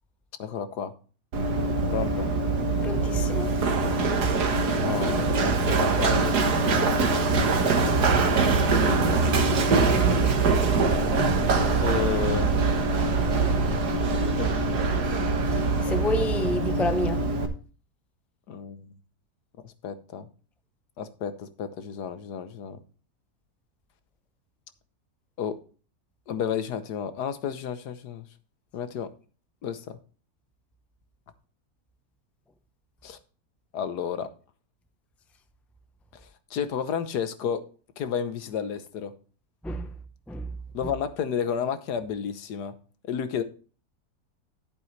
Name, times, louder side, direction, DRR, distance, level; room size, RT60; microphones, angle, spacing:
voice 1, 0.4-0.9 1.8-2.3 4.8-6.4 11.8-12.5 14.1-14.5 18.5-18.9 19.6-20.3 21.0-22.8 25.4-25.6 26.3-28.3 28.7-29.1 29.6-30.0 33.0-33.2 33.7-34.3 36.5-37.7 38.0-39.1 40.7-42.7 43.1-43.4, left 7 dB, 90° left, 1.6 m, -31 dB
Run, 1.3-17.5, right 3 dB, 85° right, 1.9 m, -23 dB
voice 2, 2.8-3.5 15.9-17.2 39.6-39.9 40.3-40.4, left 2 dB, ahead, 0.5 m, -28 dB
11.5 x 8.5 x 3.2 m
omnidirectional pair, 1.7 m